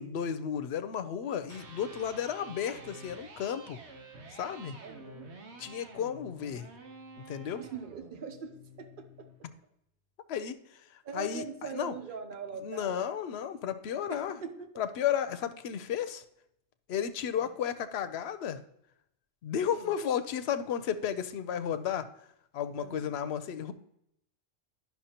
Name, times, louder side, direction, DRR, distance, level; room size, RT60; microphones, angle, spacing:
voice 1, 0.0-3.8 4.3-4.8 5.6-6.7 7.3-7.6 10.3-10.6 11.1-11.4 11.7-11.9 12.6-14.4 14.8-16.2 16.9-18.6 19.4-22.1 22.5-23.7, left 8 dB, 70° left, 11 dB, 0.8 m, -33 dB
Electric guitar, 1.4-9.4, right 2 dB, 80° right, 1.2 m, -50 dB
voice 2, 4.8-5.3 7.6-9.5 11.0-13.2 14.1-14.7 17.3-17.5 19.7-19.9 22.8-23.1, right 5 dB, 55° right, 7 dB, 0.9 m, -42 dB
10.5 x 5.9 x 2.8 m, 0.77 s
omnidirectional pair, 1.1 m